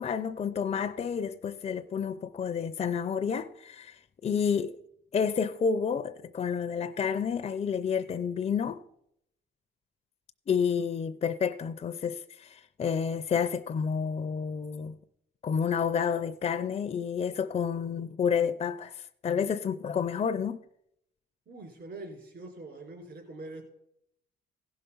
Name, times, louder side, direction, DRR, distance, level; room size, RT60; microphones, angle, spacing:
voice 1, 0.0-3.9 4.2-4.7 5.1-8.8 10.5-15.0 15.4-20.6, left 6 dB, 35° left, 0.5 m, -30 dB
voice 2, 21.5-23.6, right 2 dB, 60° right, 3.7 m, -43 dB
15.5 x 5.7 x 5.5 m
cardioid pair, 90°, 20 cm